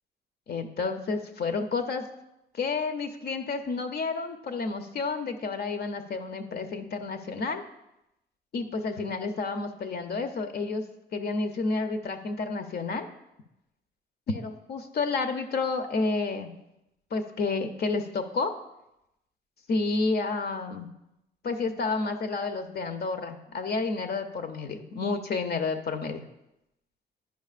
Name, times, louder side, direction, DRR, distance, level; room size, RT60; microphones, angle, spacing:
voice 1, 0.5-2.0 2.5-7.6 8.5-10.8 11.1-13.1 14.3-16.5 17.1-18.5 19.7-20.9 21.4-26.2, left 3 dB, 55° left, 6 dB, 0.7 m, -30 dB
10.5 x 5.0 x 2.5 m, 0.88 s
cardioid pair, 90°, 20 cm